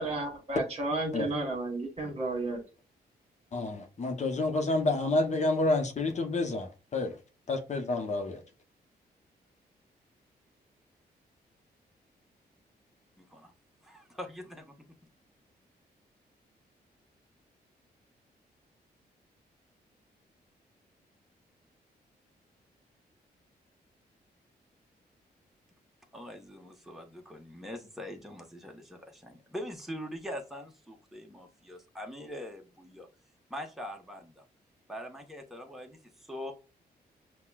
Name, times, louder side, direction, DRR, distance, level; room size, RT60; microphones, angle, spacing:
voice 1, 0.0-2.6, right 2 dB, 40° right, 1.5 m, -32 dB
voice 2, 3.5-7.2 7.5-8.4, left 2 dB, 45° left, 0.8 m, -29 dB
voice 3, 13.2-13.5 13.8-14.7 26.1-33.1 33.5-34.4 34.9-36.5, equal, ahead, 1.1 m, -43 dB
5.7 x 2.2 x 2.3 m
cardioid pair, 75°, 17 cm